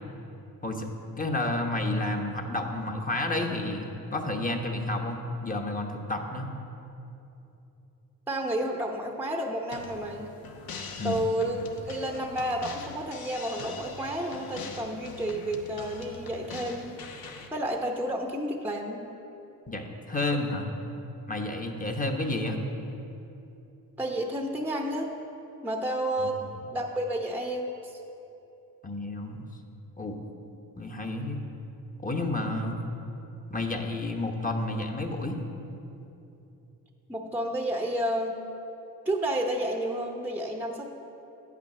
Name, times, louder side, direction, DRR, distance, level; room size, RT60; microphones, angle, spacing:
voice 1, 1.2-6.5 11.0-11.2 19.7-20.7 21.3-22.6 26.2-26.3 28.8-29.5 30.0-30.2 30.8-31.4 32.0-32.8 33.5-35.3, left 2 dB, 20° left, 3 dB, 1.0 m, -30 dB
voice 2, 8.3-10.3 11.0-17.0 17.5-19.0 24.0-25.1 25.6-26.4 26.7-28.0 37.1-38.4 39.0-40.9, right 1 dB, 5° right, 2 dB, 0.8 m, -31 dB
sound 1, 9.7-17.5, left 4 dB, 70° left, 0.9 m, -43 dB
8.6 x 6.0 x 6.0 m, 2.9 s
cardioid pair, 60°, 37 cm